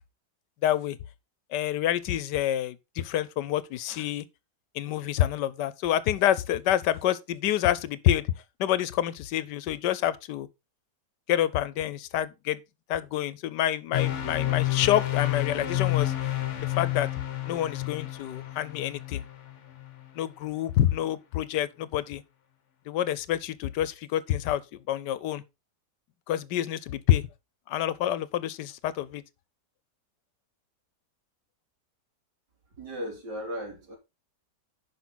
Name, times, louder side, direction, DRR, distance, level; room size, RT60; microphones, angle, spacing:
voice 1, 0.6-1.0 1.5-4.2 4.7-8.3 8.6-10.5 11.3-12.6 12.9-16.1 16.6-17.1 17.5-19.2 20.1-22.2 22.9-24.6 24.9-25.4 26.3-27.3 27.7-29.2, left 12 dB, 85° left, 1.3 m, -27 dB
sound 1, 13.9-20.1, left 14 dB, 50° left, 1.2 m, -29 dB
voice 2, 32.8-34.0, equal, 75° right, 3.7 m, -36 dB
10.5 x 5.8 x 4.0 m
omnidirectional pair, 1.8 m